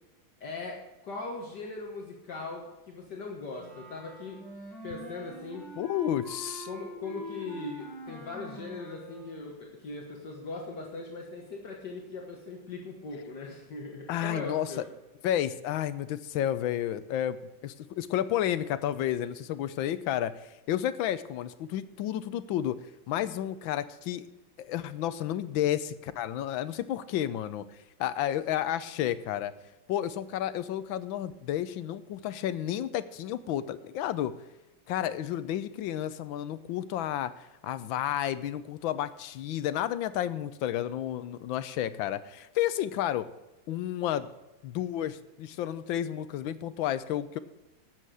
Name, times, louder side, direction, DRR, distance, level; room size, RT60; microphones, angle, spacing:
voice 1, 0.4-4.4 4.8-5.7 6.7-14.9, left 3 dB, 60° left, 0 dB, 2.1 m, -40 dB
Wind instrument woodwind instrument, 3.6-9.5, left 1 dB, ahead, 4.2 m, -44 dB
voice 2, 5.8-6.7 14.1-14.7 15.2-17.4 17.6-22.8 23.1-24.3 24.6-27.6 28.0-29.5 29.9-34.3 34.9-43.3 43.7-44.3 44.6-47.4, left 11 dB, 85° left, 14 dB, 1.5 m, -31 dB
12.0 x 7.7 x 6.3 m, 1.0 s
omnidirectional pair, 2.1 m